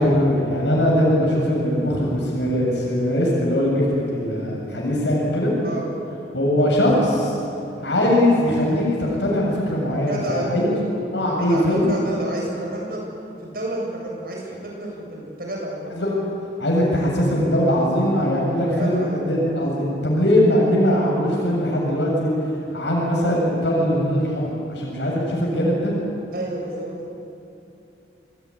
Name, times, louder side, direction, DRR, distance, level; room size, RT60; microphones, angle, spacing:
voice 1, 0.0-5.5 6.3-7.4 7.8-10.7 11.1-11.9 16.0-16.2 16.6-22.3 22.7-25.9, equal, 80° left, -3 dB, 7.3 m, -21 dB
voice 2, 10.1-10.8 11.4-13.0 13.4-15.9 18.7-19.2 26.3-26.9, right 1 dB, 55° right, -1 dB, 8.0 m, -30 dB
27.5 x 21.5 x 9.9 m, 2.9 s
head